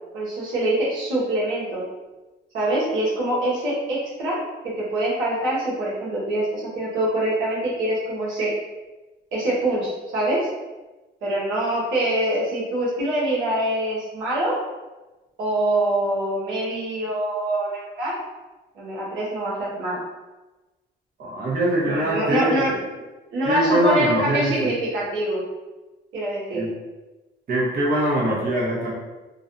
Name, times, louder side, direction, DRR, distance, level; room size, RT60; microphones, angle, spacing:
voice 1, 0.1-1.8 2.5-4.4 4.8-8.5 9.3-10.5 11.2-14.6 15.4-18.2 18.7-20.0 21.8-22.7 23.3-25.4 26.1-26.6, right 1 dB, 90° right, -7 dB, 0.8 m, -24 dB
voice 2, 21.2-22.8 23.4-24.7 26.5-26.7 27.5-28.9, right 1 dB, 50° right, -5 dB, 0.8 m, -22 dB
2.4 x 2.1 x 2.6 m, 1.1 s
cardioid pair, 90°, 20 cm